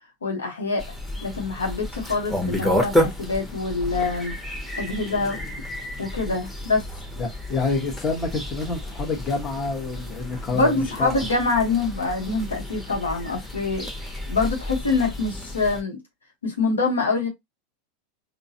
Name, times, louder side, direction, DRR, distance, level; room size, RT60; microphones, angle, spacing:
voice 1, 0.2-0.8 1.2-4.3 4.8-5.4 6.0-6.8 10.5-13.9 14.3-16.0 16.4-17.3, left 3 dB, 80° left, 0.9 m, -25 dB
sound 1, 0.8-15.8, left 1 dB, 10° left, 1.0 m, -31 dB
voice 2, 7.2-11.1, left 3 dB, 25° left, 1.2 m, -27 dB
3.8 x 2.2 x 2.7 m
figure-of-eight pair, 85°, 0 cm